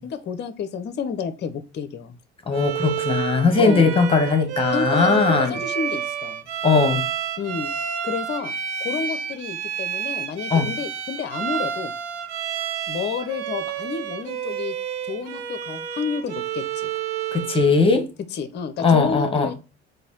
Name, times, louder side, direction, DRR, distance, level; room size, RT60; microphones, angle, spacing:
voice 1, 0.0-2.2 3.6-4.0 4.7-5.2 5.5-6.4 7.4-7.7 8.0-8.5 8.8-11.9 12.9-14.8 15.1-16.9 18.3-19.5, left 6 dB, 30° left, 0.6 m, -30 dB
voice 2, 2.5-5.6 6.6-7.0 10.5-10.7 17.3-18.1 18.8-19.5, left 4 dB, 15° left, 1.1 m, -19 dB
Bowed string instrument, 2.5-17.7, right 9 dB, 75° right, 0.6 m, -29 dB
4.0 x 2.6 x 3.7 m
figure-of-eight pair, 60°, 35 cm